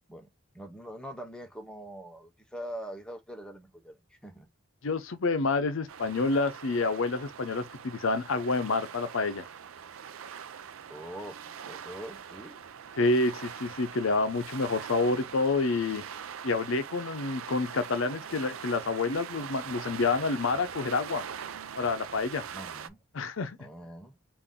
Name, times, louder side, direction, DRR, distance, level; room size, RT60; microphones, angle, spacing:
voice 1, 0.5-4.5 10.9-12.6 22.5-23.0 23.6-24.2, right 1 dB, 5° left, 0.6 m, -43 dB
voice 2, 4.8-9.5 13.0-16.0 16.4-21.2 21.8-22.4 23.1-23.6, left 3 dB, 70° left, 0.6 m, -28 dB
sound 1, 5.9-22.9, right 8 dB, 75° right, 0.5 m, -42 dB
3.8 x 2.5 x 3.6 m
head